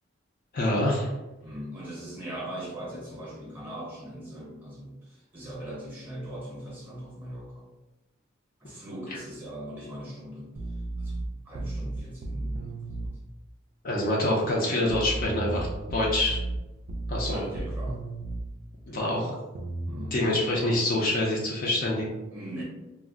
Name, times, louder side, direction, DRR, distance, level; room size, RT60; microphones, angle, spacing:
voice 1, 0.5-1.1 13.8-16.4 17.1-17.5 18.9-19.3 20.1-22.2, left 1 dB, 45° left, -3 dB, 0.5 m, -26 dB
voice 2, 1.4-7.7 8.6-10.5 11.0-13.2 17.3-18.0 18.9-19.4 19.9-20.2 22.3-22.6, right 1 dB, 10° right, -5 dB, 0.8 m, -40 dB
sound 1, 10.6-13.1 14.9-18.5 19.6-21.2, right 2 dB, 45° right, 0.3 m, -34 dB
2.2 x 2.0 x 3.6 m, 1.0 s
head